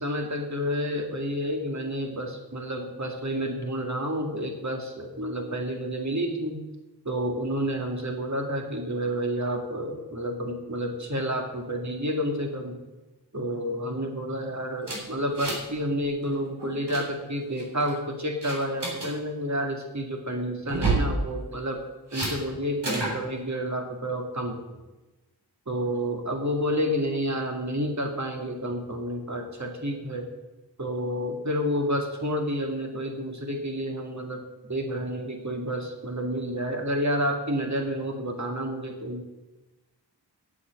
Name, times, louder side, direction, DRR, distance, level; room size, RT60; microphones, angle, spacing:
voice 1, 0.0-6.6 7.0-12.8 13.3-21.8 22.1-24.6 25.7-30.2 30.8-39.2, equal, 45° right, 3 dB, 2.2 m, -30 dB
sound 1, 14.8-16.2 16.6-17.0 17.6-17.9 18.4-19.1 20.6-21.1 22.1-22.3 22.8-23.2, right 3 dB, 75° right, 3.4 m, -28 dB
8.2 x 7.8 x 8.1 m, 1.1 s
wide cardioid pair, 40°, 41 cm